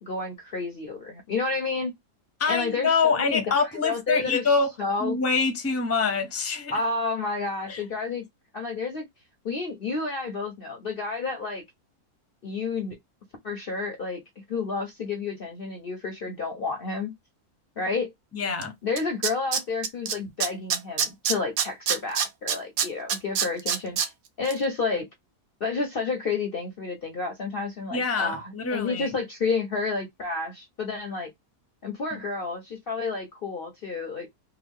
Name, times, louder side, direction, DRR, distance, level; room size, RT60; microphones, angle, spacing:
voice 1, 0.0-1.9 2.5-4.4 4.8-5.2 6.7-8.2 8.5-9.0 9.4-11.6 12.4-13.0 13.4-14.2 14.5-17.1 17.8-18.1 18.8-24.0 24.4-25.1 25.6-31.3 31.8-34.3, left 4 dB, 50° left, 0.7 m, -30 dB
voice 2, 2.4-4.7 5.0-6.7 7.7-7.8 18.3-18.7 27.9-29.1 32.1-32.2, left 4 dB, 15° left, 0.5 m, -25 dB
Tools, 18.6-18.7 19.0-20.1 20.4-24.1 24.5-24.6, right 7 dB, 70° right, 1.0 m, -25 dB
3.5 x 2.0 x 3.4 m
omnidirectional pair, 1.6 m